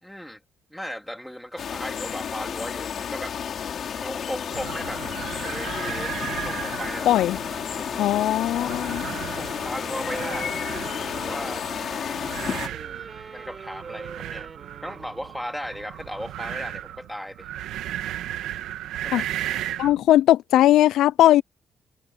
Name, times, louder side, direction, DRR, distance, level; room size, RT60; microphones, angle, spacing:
voice 1, 0.0-0.4 0.7-3.4 4.0-5.0 5.4-6.2 6.4-7.1 9.0-10.6 11.2-11.6 12.6-14.5 14.8-17.5 19.0-19.3, equal, ahead, 3.1 m, -36 dB
sound 1, 1.6-12.7, left 8 dB, 60° left, 5.4 m, -31 dB
sound 2, 4.5-20.0, right 12 dB, 85° right, 1.8 m, -36 dB
voice 2, 7.1-7.4 8.0-9.0 19.1-19.2 19.8-21.4, left 13 dB, 85° left, 0.3 m, -19 dB
sound 3, 9.4-15.8, right 5 dB, 35° right, 5.2 m, -42 dB
cardioid pair, 90°, 0 cm